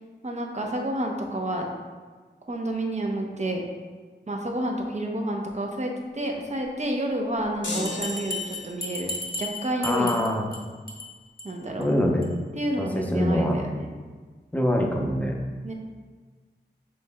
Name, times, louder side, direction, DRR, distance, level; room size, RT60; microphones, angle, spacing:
voice 1, 0.2-1.7 2.5-3.6 4.3-9.1 9.4-10.2 11.4-11.9 12.6-13.9 15.6-15.7, right 1 dB, 40° right, 1 dB, 0.8 m, -29 dB
sound 1, 7.6-8.9, left 2 dB, 90° left, 0.9 m, -35 dB
Bell, 7.8-10.6 10.9-11.1 11.4-11.5 11.8-11.9 12.2-12.3, left 2 dB, 55° left, 0.8 m, -34 dB
voice 2, 9.8-10.5 11.8-12.3 12.8-13.6 14.5-15.3, left 1 dB, 10° left, 0 dB, 0.7 m, -24 dB
6.1 x 3.1 x 2.3 m, 1.4 s
cardioid pair, 40°, 18 cm